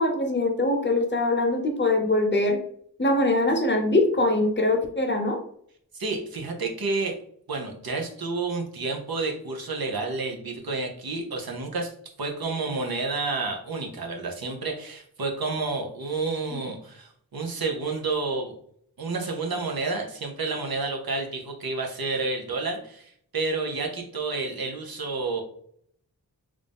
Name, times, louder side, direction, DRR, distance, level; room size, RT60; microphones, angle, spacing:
voice 1, 0.0-2.6 3.0-5.4, left 2 dB, 30° left, 3 dB, 0.8 m, -23 dB
voice 2, 5.9-7.1 7.5-11.9 12.2-18.5 19.0-25.4, right 3 dB, 70° right, 1 dB, 0.9 m, -30 dB
3.3 x 2.6 x 3.5 m, 0.64 s
wide cardioid pair, 65°, 37 cm